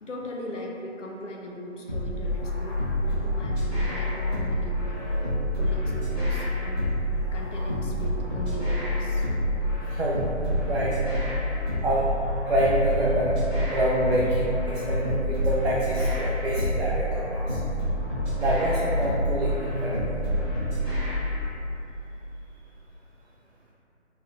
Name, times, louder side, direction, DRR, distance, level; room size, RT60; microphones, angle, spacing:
voice 1, 0.0-2.8 3.0-5.0 5.6-6.8 7.3-9.3, left 1 dB, 75° left, -1 dB, 0.6 m, -39 dB
sound 1, 1.9-21.5, left 1 dB, ahead, 1.0 m, -27 dB
voice 2, 9.8-10.2 10.6-10.9 11.8-12.1 12.5-13.3 13.7-17.6 18.4-20.2, right 1 dB, 60° right, -5 dB, 0.5 m, -26 dB
3.1 x 3.0 x 2.4 m, 2.9 s
figure-of-eight pair, 170°, 36 cm